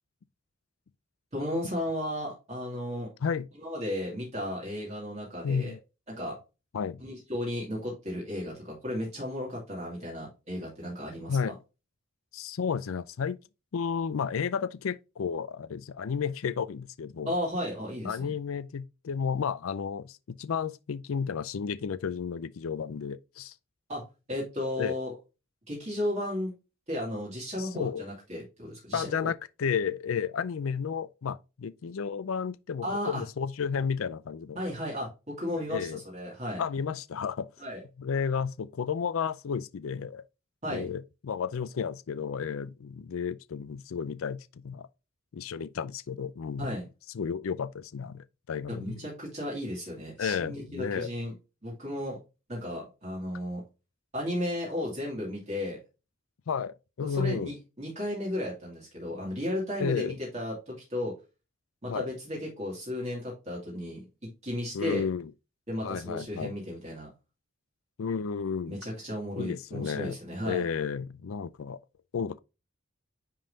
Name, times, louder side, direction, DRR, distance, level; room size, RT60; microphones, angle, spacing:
voice 1, 1.3-3.1 3.6-5.7 6.1-6.4 7.0-11.5 17.3-18.3 23.9-24.0 24.3-25.1 25.7-26.5 26.9-29.3 32.8-33.2 34.6-36.6 37.6-37.8 40.6-40.9 46.6-46.8 48.7-51.3 51.6-52.2 52.5-53.6 54.1-55.8 57.0-61.1 61.8-65.0 65.7-67.1 68.7-70.6, left 1 dB, 35° right, 2.5 m, -34 dB
voice 2, 5.4-5.8 6.7-7.0 11.3-11.6 12.3-13.4 13.7-17.3 18.0-23.5 24.8-24.9 27.6-28.0 28.9-34.6 35.7-36.0 36.6-37.5 38.0-40.2 40.7-44.9 45.3-46.8 47.1-49.0 50.2-51.1 56.5-57.5 59.8-60.1 61.9-62.1 64.7-65.3 65.8-66.5 68.0-68.8 69.4-70.2 70.4-71.8 72.1-72.4, left 6 dB, 80° left, 0.4 m, -32 dB
10.0 x 3.8 x 2.7 m
head